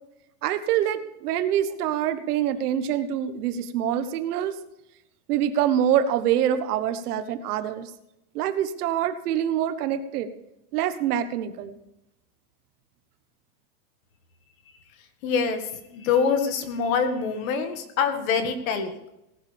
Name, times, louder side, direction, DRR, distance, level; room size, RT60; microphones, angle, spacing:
voice 1, 0.4-4.6 5.3-7.9 8.3-10.3 10.7-11.8, right 10 dB, 75° right, 11 dB, 1.4 m, -25 dB
voice 2, 15.2-18.9, left 6 dB, 60° left, 7 dB, 2.1 m, -25 dB
18.0 x 11.5 x 3.5 m, 0.89 s
supercardioid pair, 175°, 45 cm